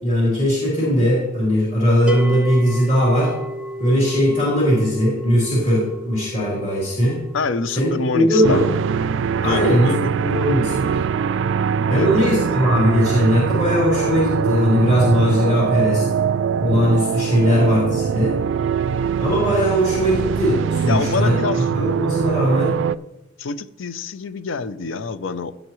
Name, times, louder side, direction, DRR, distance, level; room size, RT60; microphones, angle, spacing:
voice 1, 0.0-3.3 3.8-7.2 7.7-8.7 9.4-9.9 10.2-11.0 11.9-16.0 16.6-18.3 19.2-22.8, equal, 35° left, -7 dB, 3.5 m, -19 dB
sound 1, 2.1-13.2, equal, 5° right, 0.5 m, -36 dB
voice 2, 7.3-8.6 9.4-10.1 11.9-12.3 20.9-21.7 23.4-25.5, left 4 dB, 85° left, 13 dB, 0.6 m, -26 dB
sound 2, 8.4-22.9, right 7 dB, 70° right, 0.3 m, -22 dB
16.0 x 7.8 x 3.1 m, 0.95 s
head